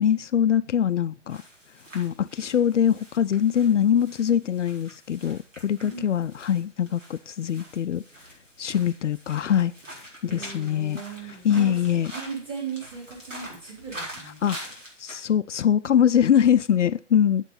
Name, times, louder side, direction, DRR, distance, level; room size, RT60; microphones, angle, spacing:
voice 1, 0.0-1.4 1.9-8.0 8.6-9.7 10.2-11.0 11.3-12.1 14.4-14.7 15.0-17.4, left 9 dB, 75° left, 0.5 m, -23 dB
sound 1, 1.3-15.2, right 1 dB, 85° right, 4.2 m, -45 dB
voice 2, 5.8-6.1 10.2-11.8 12.0-14.4, right 5 dB, 15° right, 3.9 m, -37 dB
9.0 x 8.0 x 4.0 m
figure-of-eight pair, 135°, 37 cm